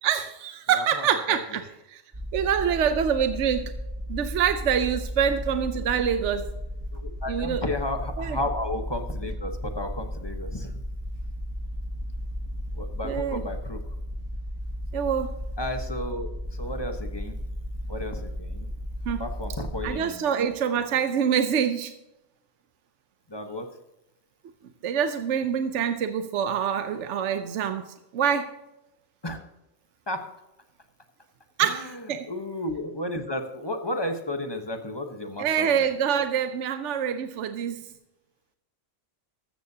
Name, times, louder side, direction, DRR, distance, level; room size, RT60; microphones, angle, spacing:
voice 1, 0.0-2.0 2.3-3.7 4.1-6.5 7.3-7.6 8.2-8.4 13.0-13.4 14.9-15.3 19.1-19.2 19.8-21.9 24.8-27.8 28.1-28.5 31.6-32.3 35.4-37.9, right 8 dB, 75° right, 9 dB, 1.0 m, -25 dB
voice 2, 0.7-1.4 6.9-10.8 12.8-13.8 15.6-17.4 17.9-18.7 19.2-20.4 23.3-23.7 29.2-29.4 30.1-30.2 31.6-35.8, left 1 dB, 20° left, 5 dB, 1.0 m, -33 dB
sound 1, 2.1-19.9, equal, 25° right, 1.7 m, -34 dB
14.0 x 13.0 x 2.8 m, 0.94 s
omnidirectional pair, 1.3 m